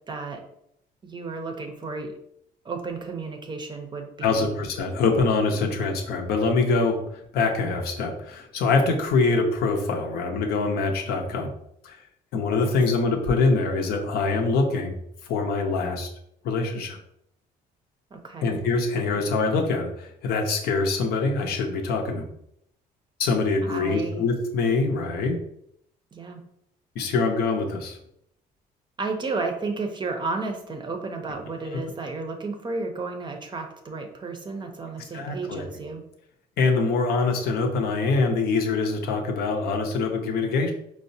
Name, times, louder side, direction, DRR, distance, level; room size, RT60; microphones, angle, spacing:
voice 1, 0.1-0.4 1.0-2.1 2.6-4.6 12.6-12.7 18.1-18.6 23.6-24.2 26.1-26.4 29.0-36.0, right 3 dB, 25° right, 4 dB, 0.5 m, -32 dB
voice 2, 4.2-7.0 7.3-11.5 11.8-12.0 12.3-14.9 15.3-16.1 16.4-17.0 18.4-22.3 23.2-25.4 26.9-28.0 35.0-35.6 36.6-40.7, left 3 dB, 70° left, 3 dB, 0.6 m, -24 dB
4.6 x 2.0 x 2.6 m, 0.74 s
cardioid pair, 110°, 17 cm